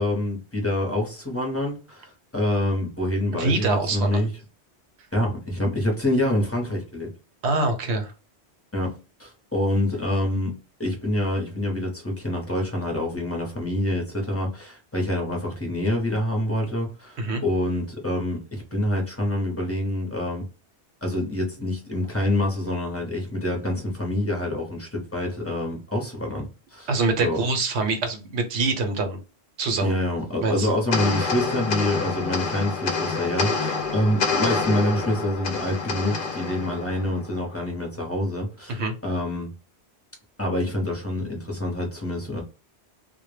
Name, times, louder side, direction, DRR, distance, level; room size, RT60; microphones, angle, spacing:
voice 1, 0.0-4.4 5.1-7.1 8.7-20.4 21.0-27.5 29.8-39.5 40.4-42.4, left 1 dB, 15° left, 0.5 m, -26 dB
voice 2, 3.4-4.2 7.4-8.1 17.2-17.4 26.9-29.2 29.6-30.0 30.4-30.7 38.7-38.9, right 3 dB, 70° right, 0.8 m, -24 dB
sound 1, 30.9-37.6, left 4 dB, 60° left, 0.6 m, -27 dB
2.1 x 2.1 x 3.1 m
omnidirectional pair, 1.2 m